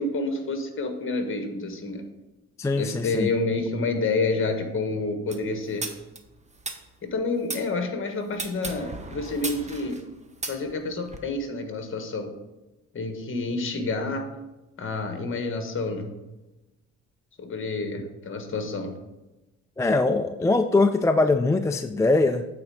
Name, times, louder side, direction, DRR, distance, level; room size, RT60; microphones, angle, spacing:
voice 1, 0.0-2.0 2.8-5.9 7.0-10.0 10.5-12.3 12.9-14.3 14.8-16.1 17.4-18.9, left 3 dB, 45° left, 5 dB, 1.5 m, -29 dB
voice 2, 2.6-3.3 19.8-22.5, left 3 dB, 10° left, 7 dB, 0.3 m, -22 dB
sound 1, 5.3-7.7 8.3-11.2, right 3 dB, 25° right, 1.0 m, -36 dB
8.6 x 4.3 x 4.9 m, 1.0 s
cardioid pair, 90°, 30 cm